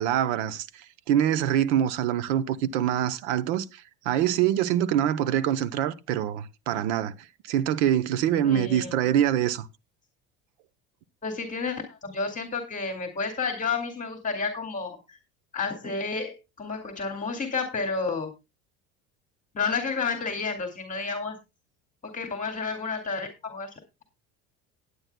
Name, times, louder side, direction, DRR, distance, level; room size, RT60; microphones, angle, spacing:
voice 1, 0.0-7.1 7.5-9.7, right 10 dB, 85° right, 0.9 m, -25 dB
voice 2, 8.4-9.0 11.2-15.2 15.5-18.3 19.5-21.4 22.0-23.7, left 4 dB, 25° left, 2.2 m, -31 dB
17.0 x 9.8 x 2.2 m
supercardioid pair, 110°, 33 cm